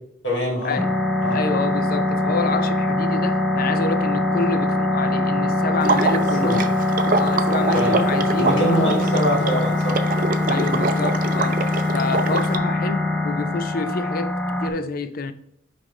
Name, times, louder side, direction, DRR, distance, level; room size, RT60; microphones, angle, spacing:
voice 1, 0.2-0.8 1.2-1.4 6.4-6.6 7.7-7.9 8.4-10.0 10.5-10.8, equal, 70° left, 2.8 m, -23 dB
sound 1, 0.8-14.7, left 2 dB, 5° left, 0.6 m, -22 dB
voice 2, 1.3-6.7 7.2-9.1 10.5-11.6 11.9-15.3, left 3 dB, 50° left, 0.5 m, -28 dB
Water / Liquid, 5.8-12.6, right 3 dB, 45° right, 0.5 m, -25 dB
9.9 x 3.6 x 3.2 m
head